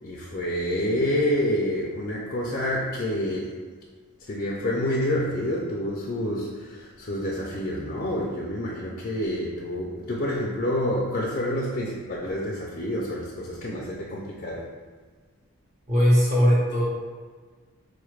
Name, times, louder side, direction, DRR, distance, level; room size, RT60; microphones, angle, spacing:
voice 1, 0.0-3.5 4.2-14.7, left 1 dB, 35° left, -4 dB, 0.4 m, -28 dB
voice 2, 15.9-16.9, equal, 30° right, -5 dB, 0.9 m, -19 dB
4.2 x 2.4 x 3.1 m, 1.5 s
head